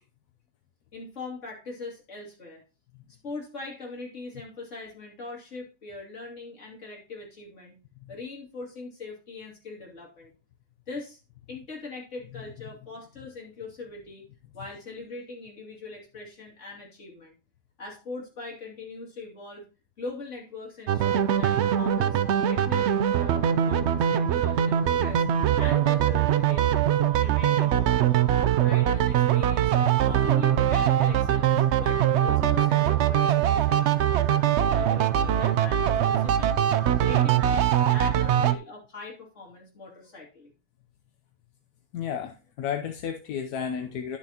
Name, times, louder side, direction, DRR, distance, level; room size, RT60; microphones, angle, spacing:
voice 1, 0.9-2.6 3.1-7.8 8.1-10.3 10.9-11.2 11.5-14.3 14.5-17.3 17.8-19.7 20.0-22.2 22.5-25.3 25.6-36.6 37.0-40.5, left 3 dB, 50° left, -2 dB, 3.0 m, -41 dB
sound 1, 20.9-38.6, right 10 dB, 65° right, 0.7 m, -22 dB
voice 2, 41.9-44.2, left 8 dB, 80° left, 6 dB, 1.3 m, -32 dB
11.5 x 7.0 x 2.9 m, 0.31 s
omnidirectional pair, 1.6 m